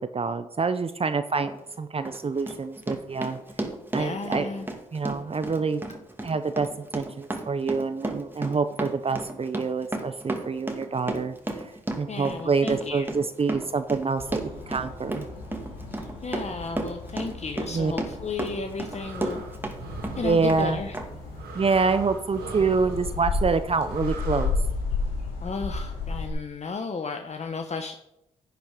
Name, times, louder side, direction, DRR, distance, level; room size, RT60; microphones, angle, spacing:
voice 1, 0.0-3.4 3.9-4.6 4.9-5.8 6.2-6.7 6.9-11.7 12.0-15.3 17.7-17.9 20.2-20.8 21.5-24.5, right 4 dB, 40° right, 10 dB, 0.8 m, -26 dB
Run, 1.4-1.6 2.1-19.8 20.0-20.7 20.9-21.0, right 2 dB, 15° right, 2.2 m, -33 dB
voice 2, 3.9-4.7 12.1-13.1 16.2-19.4 20.2-20.9 25.4-28.0, left 4 dB, 45° left, 6 dB, 1.1 m, -33 dB
sound 1, 14.2-26.3, left 3 dB, 85° left, 3.1 m, -34 dB
sound 2, 18.5-24.5, right 4 dB, 85° right, 2.2 m, -42 dB
10.5 x 9.3 x 5.1 m, 0.83 s
supercardioid pair, 50°, 16 cm